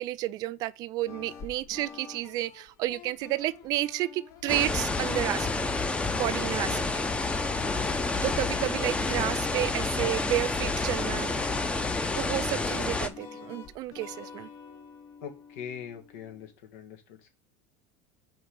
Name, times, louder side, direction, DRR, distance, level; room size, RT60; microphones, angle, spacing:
voice 1, 0.0-5.8 6.1-7.5 8.2-11.3 12.2-14.5, right 16 dB, 55° right, 0.4 m, -31 dB
sound 1, 1.0-16.5, left 6 dB, 50° left, 1.4 m, -48 dB
sound 2, 4.5-13.1, left 3 dB, 15° left, 0.8 m, -29 dB
voice 2, 7.6-8.1 15.2-17.3, left 8 dB, 75° left, 1.5 m, -43 dB
5.2 x 3.9 x 5.3 m
hypercardioid pair, 85°, 8 cm